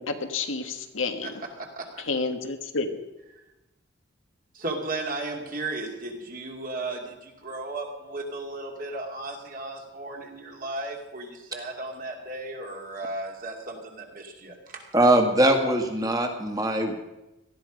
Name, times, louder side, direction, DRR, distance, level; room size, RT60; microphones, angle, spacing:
voice 1, 0.0-1.3 2.1-3.0, left 4 dB, 85° left, 6 dB, 1.6 m, -30 dB
voice 2, 1.6-2.0 4.5-14.9, right 2 dB, 45° right, 1 dB, 2.6 m, -35 dB
voice 3, 14.9-16.9, right 1 dB, 20° right, 4 dB, 1.9 m, -21 dB
18.5 x 13.0 x 5.2 m, 0.98 s
head